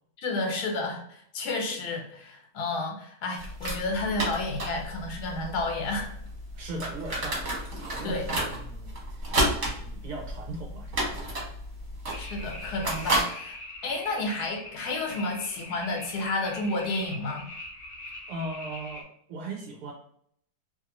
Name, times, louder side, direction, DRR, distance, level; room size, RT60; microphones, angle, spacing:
voice 1, 0.2-6.1 8.0-8.3 12.1-13.6 13.8-17.5, left 2 dB, 75° left, 2 dB, 1.2 m, -31 dB
sound 1, 3.4-13.2, right 1 dB, 50° right, 1.1 m, -32 dB
voice 2, 6.6-7.4 7.8-9.2 9.6-11.4 18.3-19.9, right 2 dB, 70° right, -1 dB, 0.9 m, -39 dB
sound 2, 12.1-19.0, left 1 dB, 55° left, 0.6 m, -42 dB
2.7 x 2.5 x 2.9 m, 0.65 s
omnidirectional pair, 1.7 m